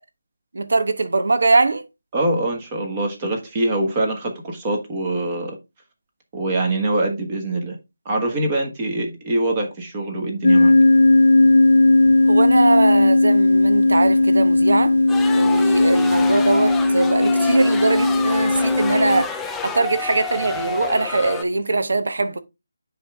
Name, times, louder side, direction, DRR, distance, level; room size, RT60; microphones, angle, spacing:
voice 1, 0.5-1.8 12.3-15.0 15.3-22.4, right 3 dB, 70° right, 1.1 m, -21 dB
voice 2, 2.1-5.6 6.3-7.8 8.0-10.7, right 2 dB, 25° right, 1.4 m, -24 dB
sound 1, 10.4-19.2, left 2 dB, 80° left, 0.6 m, -16 dB
sound 2, 15.1-21.4, left 4 dB, 5° left, 0.4 m, -30 dB
9.7 x 3.4 x 3.5 m
figure-of-eight pair, 165°, 0 cm